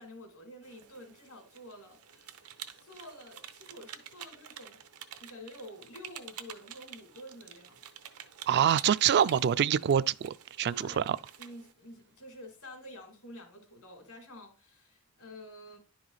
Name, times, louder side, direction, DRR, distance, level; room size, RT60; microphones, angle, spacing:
voice 1, 0.0-2.5 2.8-4.8 5.2-7.8 10.7-11.1 11.4-15.8, left 1 dB, 80° left, 2.6 m, -49 dB
sound 1, 0.6-11.7, right 10 dB, 85° right, 0.8 m, -48 dB
voice 2, 8.5-11.2, right 9 dB, 50° right, 0.3 m, -26 dB
10.5 x 4.7 x 4.0 m
head